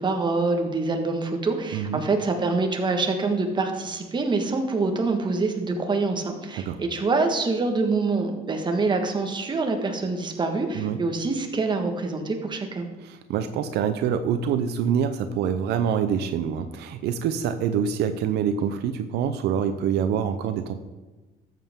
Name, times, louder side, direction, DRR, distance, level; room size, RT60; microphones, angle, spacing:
voice 1, 0.0-12.9, right 3 dB, 25° right, 4 dB, 1.5 m, -25 dB
voice 2, 1.7-2.0 6.6-6.8 10.7-11.0 13.0-20.7, right 8 dB, 80° right, 10 dB, 0.6 m, -26 dB
13.0 x 7.5 x 3.7 m, 1.2 s
cardioid pair, 110°, 17 cm